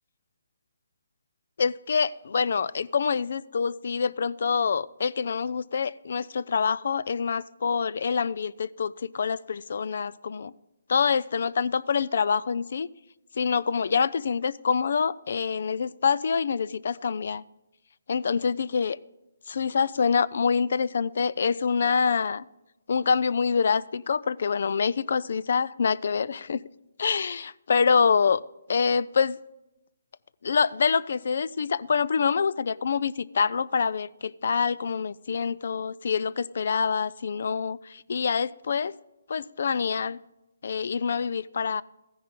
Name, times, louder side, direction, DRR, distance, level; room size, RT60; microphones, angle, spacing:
voice 1, 1.6-10.5 10.9-12.9 13.4-17.4 18.1-19.0 19.5-22.4 22.9-26.6 27.0-28.4 28.7-29.4 30.4-38.9 39.3-40.2 40.6-41.8, left 6 dB, 60° left, 0.3 m, -26 dB
14.0 x 10.0 x 3.7 m
hypercardioid pair, 155°, 0 cm